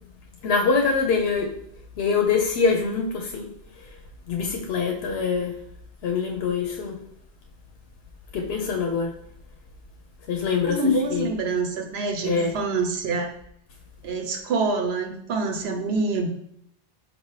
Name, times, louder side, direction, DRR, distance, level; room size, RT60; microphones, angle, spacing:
voice 1, 0.4-1.5 2.0-3.5 4.3-5.5 6.0-7.0 8.3-9.1 10.3-10.8 11.1-11.3 12.2-12.5, left 5 dB, 90° left, 1 dB, 0.8 m, -24 dB
voice 2, 10.6-13.3 14.0-16.3, right 3 dB, 80° right, 4 dB, 0.9 m, -26 dB
4.9 x 2.7 x 3.1 m, 0.71 s
omnidirectional pair, 1.0 m